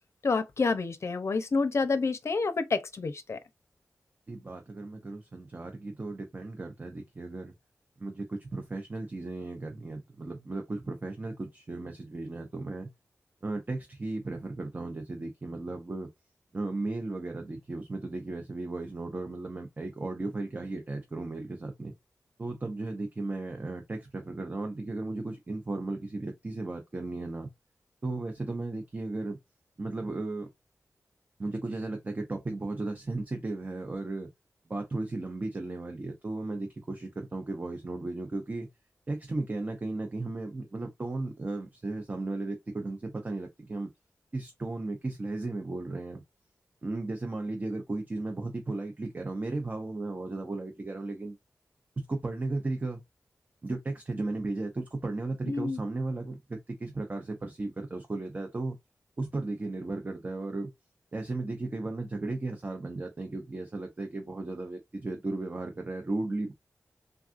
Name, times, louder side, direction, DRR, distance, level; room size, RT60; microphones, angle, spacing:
voice 1, 0.2-3.4 55.4-55.8, left 4 dB, 60° left, 0.5 m, -28 dB
voice 2, 4.3-7.5 8.0-12.9 13.4-16.1 16.5-21.9 22.4-27.5 28.0-29.4 29.8-30.5 31.4-34.3 34.7-38.7 39.1-43.9 44.3-46.2 46.8-51.4 52.0-53.0 53.6-58.8 59.2-60.7 61.1-66.5, right 2 dB, 35° right, 0.6 m, -35 dB
3.4 x 2.4 x 2.4 m
wide cardioid pair, 80°, 6 cm